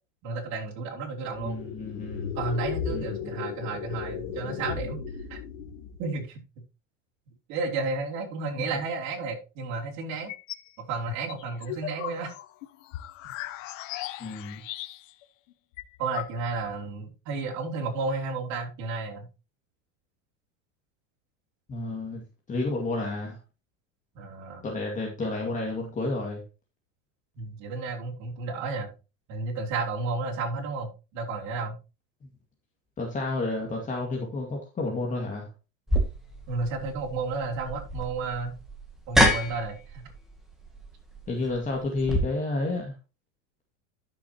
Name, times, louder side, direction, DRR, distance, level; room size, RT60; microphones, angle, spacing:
voice 1, 0.2-1.6 2.4-5.0 5.3-5.4 6.0-6.4 7.5-10.3 10.8-12.4 16.0-19.3 24.2-24.6 25.2-25.3 27.4-28.9 29.3-31.8 36.5-38.6 39.1-40.0, right 3 dB, 45° right, -2 dB, 3.5 m, -32 dB
sound 1, 1.3-6.2, left 7 dB, 90° left, 2.0 m, -35 dB
voice 2, 1.4-2.3 2.9-3.4 14.2-14.6 21.7-23.4 24.6-26.4 33.0-35.5 41.3-42.9, left 2 dB, 20° left, -1 dB, 2.1 m, -31 dB
sound 2, 10.1-10.7 11.1-15.2 15.5-15.6 15.8-16.7, left 15 dB, 70° left, 0.9 m, -38 dB
sound 3, 35.9-42.2, equal, ahead, 2.1 m, -28 dB
12.5 x 6.4 x 3.0 m, 0.30 s
supercardioid pair, 135°, 39 cm